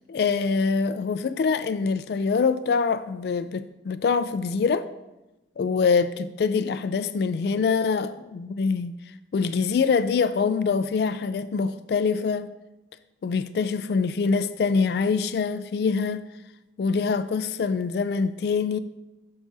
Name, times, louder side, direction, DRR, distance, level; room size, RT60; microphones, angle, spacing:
voice 1, 0.0-4.9 5.6-9.0 9.3-12.5 13.2-16.3 16.8-18.8, left 5 dB, 60° left, 0.3 m, -24 dB
12.5 x 4.8 x 2.7 m
head